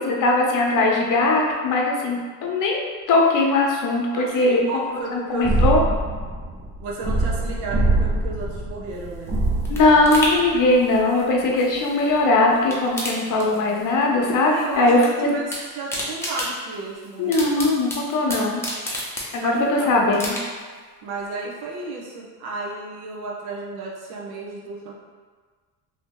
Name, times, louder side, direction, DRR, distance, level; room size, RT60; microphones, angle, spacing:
voice 1, 0.0-4.6 5.1-5.8 9.7-15.3 17.2-19.0 19.3-20.4, left 2 dB, 55° left, -1 dB, 0.8 m, -20 dB
voice 2, 4.1-5.6 6.8-9.3 14.4-17.5 19.3-20.0 21.0-24.9, right 3 dB, 80° right, -3 dB, 0.7 m, -33 dB
sound 1, 5.4-11.0, right 2 dB, 25° right, 0.4 m, -24 dB
sound 2, 8.9-12.2 12.5-14.0 14.3-15.1 15.3-19.7 20.1-20.8 21.2-21.3, left 1 dB, 5° left, 0.7 m, -32 dB
2.8 x 2.7 x 3.7 m, 1.5 s
cardioid pair, 125°, 38 cm